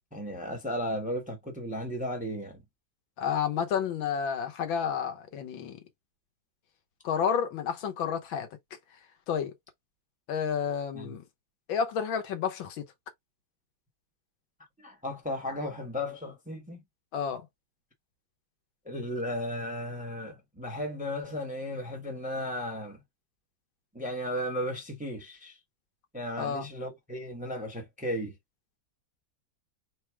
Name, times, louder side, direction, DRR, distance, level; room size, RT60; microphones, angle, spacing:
voice 1, 0.1-2.6 10.9-11.1 14.8-16.8 18.8-23.0 23.9-25.6 26.1-28.3, equal, 5° right, 0.8 m, -35 dB
voice 2, 3.2-5.8 7.0-8.5 9.3-9.5 10.3-11.2 11.7-12.8 17.1-17.5 26.4-26.7, left 7 dB, 85° left, 1.7 m, -30 dB
4.0 x 2.2 x 4.5 m
omnidirectional pair, 2.1 m